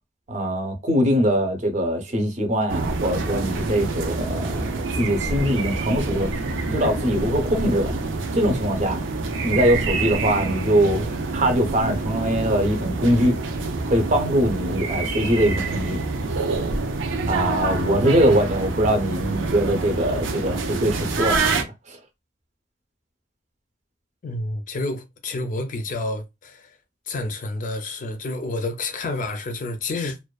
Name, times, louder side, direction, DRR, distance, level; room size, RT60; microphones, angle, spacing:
voice 1, 0.3-4.7 5.0-6.3 6.7-7.9 8.3-9.0 9.4-11.0 11.3-13.3 13.8-16.0 17.3-22.0, equal, 35° right, 0.6 m, -22 dB
sound 1, 2.7-21.6, right 3 dB, 85° right, 0.5 m, -26 dB
voice 2, 24.2-26.7 27.1-30.2, left 2 dB, 45° left, 0.4 m, -29 dB
2.5 x 2.2 x 2.3 m
head